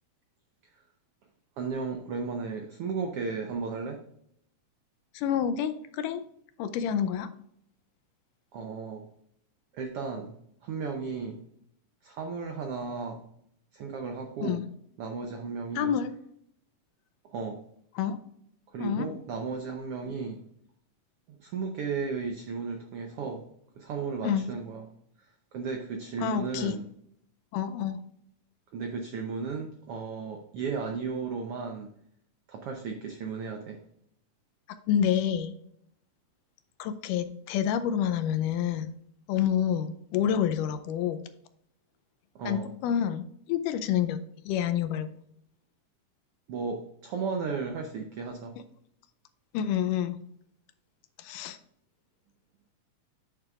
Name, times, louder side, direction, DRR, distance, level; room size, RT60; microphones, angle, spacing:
voice 1, 1.6-4.0 8.5-9.1 9.7-10.4 10.6-11.4 12.0-13.2 13.7-14.6 15.0-15.9 17.3-17.6 18.7-20.4 21.3-23.4 23.8-24.8 25.5-26.9 28.7-31.9 32.5-33.8 42.3-42.7 46.5-48.5, right 5 dB, 85° right, 4 dB, 1.3 m, -34 dB
voice 2, 5.1-6.2 6.6-7.3 14.4-14.7 15.8-16.1 18.0-18.2 18.8-19.1 24.2-24.5 26.2-26.8 27.5-28.0 34.9-35.6 36.8-38.9 39.3-41.2 42.5-44.2 44.5-45.1 49.5-50.2 51.2-51.6, left 9 dB, 85° left, 10 dB, 2.2 m, -28 dB
8.6 x 6.7 x 2.4 m, 0.70 s
omnidirectional pair, 3.7 m